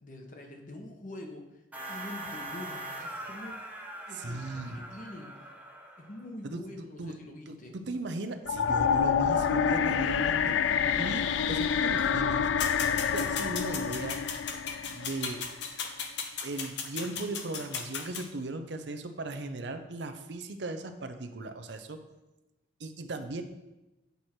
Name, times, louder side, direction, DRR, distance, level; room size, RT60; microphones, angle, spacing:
voice 1, 0.0-3.6 4.1-5.4 6.0-7.7, left 1 dB, 45° left, 3 dB, 1.0 m, -45 dB
sound 1, 1.7-6.2, right 1 dB, 10° right, 0.8 m, -42 dB
voice 2, 4.1-4.8 6.4-7.1 7.5-12.5 12.8-14.2 14.8-15.4 16.4-22.0 22.8-23.4, right 2 dB, 70° right, 8 dB, 0.6 m, -37 dB
sound 2, 8.5-15.6, left 7 dB, 85° left, 0.3 m, -28 dB
sound 3, 12.6-18.3, left 6 dB, 70° left, 0.8 m, -36 dB
8.1 x 4.6 x 4.4 m, 1.0 s
head